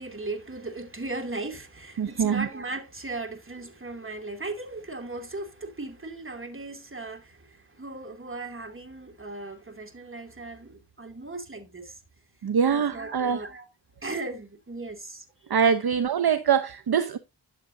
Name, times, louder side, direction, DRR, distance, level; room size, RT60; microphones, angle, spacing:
voice 1, 0.0-12.0 12.7-13.7 14.0-15.2, right 2 dB, 30° right, 2.5 m, -37 dB
voice 2, 2.0-2.5 12.4-13.4 15.5-17.2, right 7 dB, 60° right, 0.8 m, -23 dB
12.0 x 7.5 x 2.7 m
cardioid pair, 65°, 43 cm